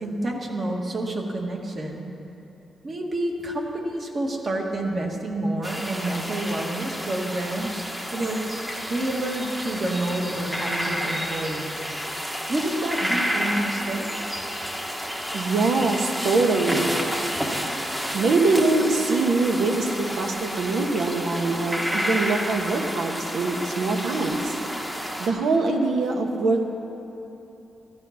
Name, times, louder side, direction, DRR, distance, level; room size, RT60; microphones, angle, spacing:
voice 1, 0.0-2.0 2.8-7.8 8.1-8.4 8.7-11.9 12.5-14.2, right 1 dB, 40° right, 1 dB, 1.7 m, -28 dB
sound 1, 5.6-25.3, equal, 10° right, 1.1 m, -30 dB
voice 2, 15.3-16.9 17.5-17.8 18.1-24.6 25.2-26.6, right 3 dB, 75° right, 3 dB, 1.5 m, -23 dB
15.0 x 11.5 x 5.8 m, 3.0 s
wide cardioid pair, 150°, 0 cm